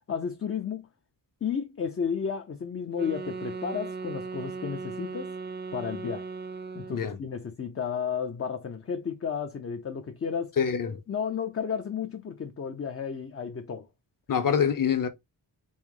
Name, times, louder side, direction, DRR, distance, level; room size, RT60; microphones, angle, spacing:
voice 1, 0.1-0.9 1.4-5.3 5.7-6.3 6.7-10.5 11.1-13.9, left 6 dB, 30° left, 0.6 m, -32 dB
sound 1, 2.9-7.1, right 4 dB, 25° right, 0.6 m, -37 dB
voice 2, 10.6-11.0 14.3-15.1, left 7 dB, 45° left, 0.9 m, -25 dB
5.5 x 2.0 x 4.7 m
wide cardioid pair, 170°, 44 cm